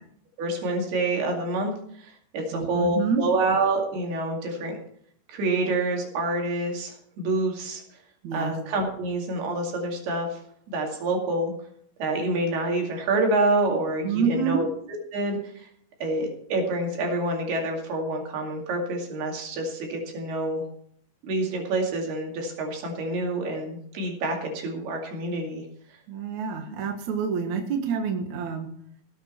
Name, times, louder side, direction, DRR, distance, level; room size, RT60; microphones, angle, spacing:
voice 1, 0.4-1.7 2.0-4.8 5.3-7.8 8.3-10.4 10.7-11.5 12.0-14.7 15.1-15.7 16.0-20.6 21.2-25.6, right 2 dB, 75° right, 1 dB, 4.3 m, -27 dB
voice 2, 2.5-3.2 8.2-8.5 14.0-14.7 26.1-28.7, right 6 dB, 55° right, 3 dB, 2.5 m, -27 dB
18.0 x 8.3 x 4.4 m, 0.65 s
omnidirectional pair, 4.6 m